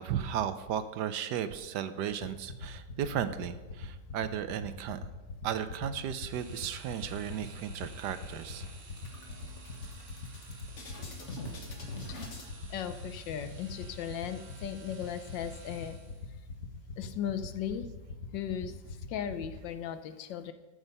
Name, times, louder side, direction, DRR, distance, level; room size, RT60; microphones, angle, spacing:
voice 1, 0.0-5.0 5.4-8.6, right 9 dB, 75° right, 12 dB, 1.2 m, -35 dB
sound 1, 2.1-19.5, left 4 dB, 60° left, 1.8 m, -40 dB
sound 2, 6.2-16.4, right 4 dB, 45° right, 1.5 m, -54 dB
sound 3, 7.2-7.9 8.3-8.4 8.7-12.5, left 2 dB, 40° left, 1.7 m, -45 dB
voice 2, 12.7-16.0 17.0-17.9 18.3-20.5, left 9 dB, 80° left, 10 dB, 1.5 m, -37 dB
13.5 x 6.5 x 5.4 m, 1.2 s
omnidirectional pair, 2.0 m